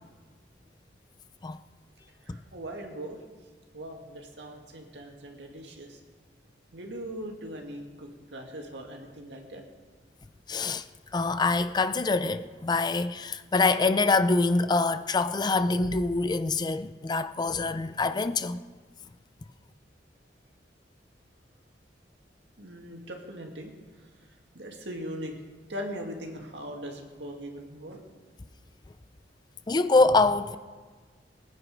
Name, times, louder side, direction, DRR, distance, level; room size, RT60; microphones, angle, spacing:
voice 1, 2.2-3.2 3.7-6.0 6.7-9.6 22.6-23.7 24.5-25.4 25.7-28.0, equal, 75° right, 2.0 m, -40 dB
voice 2, 10.5-10.8 11.1-18.6 29.7-30.6, left 3 dB, 25° left, 0.4 m, -25 dB
20.0 x 9.0 x 5.1 m
head